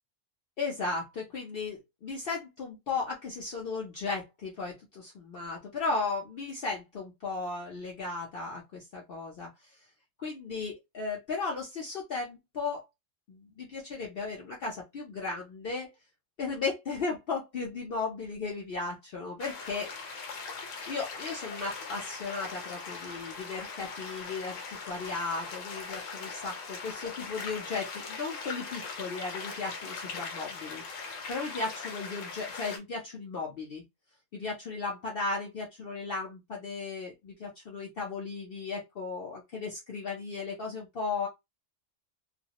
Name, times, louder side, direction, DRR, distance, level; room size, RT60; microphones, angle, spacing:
voice 1, 0.6-9.8 10.2-12.9 13.3-15.9 16.4-19.9 20.8-33.8 34.3-41.3, left 4 dB, 55° left, 0.8 m, -36 dB
sound 1, 19.4-32.8, left 4 dB, 80° left, 1.1 m, -40 dB
2.3 x 2.1 x 2.8 m
omnidirectional pair, 1.3 m